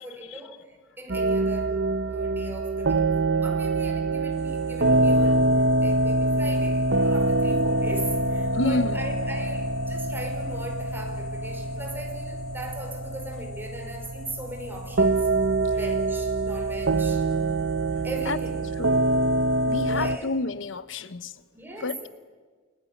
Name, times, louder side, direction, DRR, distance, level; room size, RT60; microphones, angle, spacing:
voice 1, 0.0-1.8 2.1-3.1 3.4-5.5 5.8-15.4 15.7-17.2 18.0-18.7 19.8-20.2 21.5-22.0, right 1 dB, 10° right, 5.2 m, -39 dB
sound 1, 1.1-20.2, right 2 dB, 65° right, 0.9 m, -25 dB
sound 2, 4.3-20.2, left 2 dB, 40° left, 7.8 m, -53 dB
voice 2, 8.5-9.0 15.6-15.8 17.9-18.4 18.8-19.1 19.7-21.4 21.8-22.1, left 2 dB, 75° left, 0.9 m, -30 dB
28.5 x 21.0 x 10.0 m
head